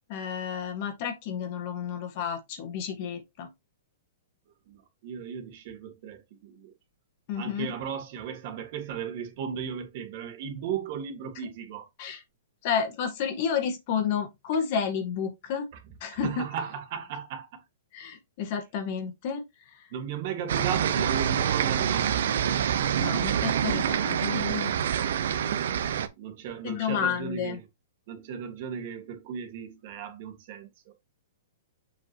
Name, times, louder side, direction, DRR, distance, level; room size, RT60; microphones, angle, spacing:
voice 1, 0.1-3.5 7.3-7.7 12.0-12.2 12.6-15.7 16.0-16.4 17.9-19.4 23.0-24.7 26.6-27.6, left 7 dB, 40° left, 1.7 m, -31 dB
voice 2, 4.7-6.7 7.3-11.9 16.1-17.6 19.9-22.3 25.7-27.7 28.1-30.9, right 7 dB, 40° right, 1.8 m, -36 dB
sound 1, 20.5-26.1, right 9 dB, 65° right, 0.9 m, -26 dB
7.1 x 5.2 x 2.9 m
hypercardioid pair, 165°, 0 cm